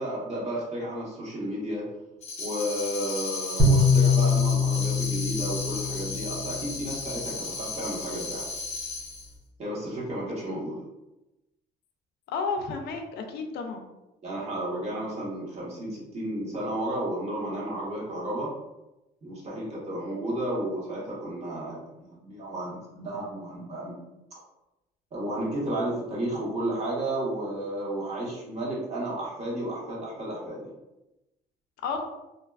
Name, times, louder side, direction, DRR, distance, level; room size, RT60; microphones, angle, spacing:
voice 1, 0.0-1.8 2.4-8.5 9.6-10.8 14.2-18.5 19.2-24.0 25.1-30.6, right 1 dB, 40° right, -6 dB, 1.1 m, -32 dB
Tambourine, 2.2-9.3, left 4 dB, 40° left, 0.7 m, -35 dB
sound 1, 3.6-6.9, left 3 dB, 20° right, 0.7 m, -23 dB
voice 2, 12.3-13.9 31.8-32.0, left 4 dB, 75° left, 5 dB, 0.4 m, -31 dB
2.6 x 2.3 x 2.3 m, 0.97 s
cardioid pair, 110°, 17 cm